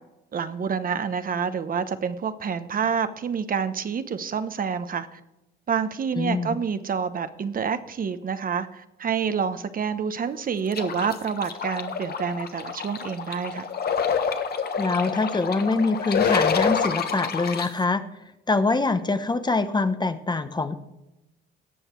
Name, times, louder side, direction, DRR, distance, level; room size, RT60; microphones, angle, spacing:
voice 1, 0.3-5.2 5.7-13.7, right 6 dB, 45° right, 11 dB, 0.9 m, -28 dB
voice 2, 6.2-6.6 14.8-18.0 18.5-20.8, left 3 dB, 20° left, 11 dB, 0.9 m, -24 dB
sound 1, 10.7-17.7, left 6 dB, 50° left, 1.3 m, -27 dB
17.5 x 6.4 x 4.5 m, 0.95 s
cardioid pair, 90°, 20 cm